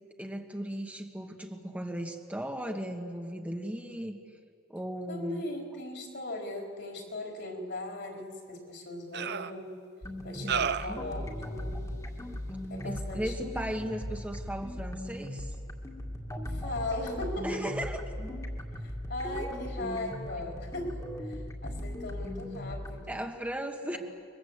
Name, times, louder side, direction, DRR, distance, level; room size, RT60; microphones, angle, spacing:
voice 1, 0.2-4.2 4.7-5.4 10.4-10.6 10.9-11.0 12.8-15.5 17.4-18.0 23.1-24.0, right 1 dB, 10° right, 3 dB, 1.5 m, -36 dB
voice 2, 5.1-9.8 10.2-11.9 12.7-13.7 16.5-17.7 18.8-23.2 23.9-24.0, left 2 dB, 60° left, 1 dB, 4.2 m, -38 dB
sound 1, 8.2-8.3 9.1-9.5 10.5-11.0, right 7 dB, 60° right, 0.7 m, -31 dB
sound 2, 10.0-23.0, left 1 dB, 15° left, 2.2 m, -38 dB
29.0 x 22.5 x 8.1 m, 2.2 s
head